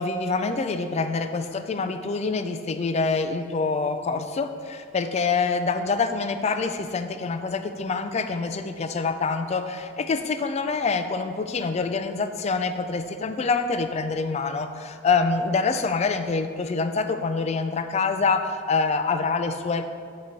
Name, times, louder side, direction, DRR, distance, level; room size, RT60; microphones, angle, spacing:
voice 1, 0.0-19.8, left 4 dB, 35° left, 8 dB, 0.3 m, -26 dB
8.4 x 2.9 x 5.3 m, 2.3 s
head